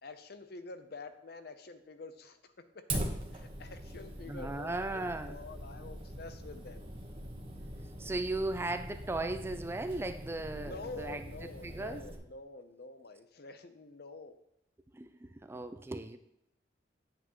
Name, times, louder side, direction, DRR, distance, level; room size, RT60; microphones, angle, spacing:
voice 1, 0.0-3.0 3.3-6.8 10.5-14.4, left 3 dB, 60° left, 9 dB, 0.7 m, -47 dB
Fire, 2.9-12.2, right 1 dB, 30° right, 1.2 m, -42 dB
voice 2, 4.3-5.4 8.0-11.2 11.6-12.0 14.9-16.2, right 2 dB, 15° right, 9 dB, 0.4 m, -37 dB
8.5 x 7.9 x 3.1 m, 0.80 s
head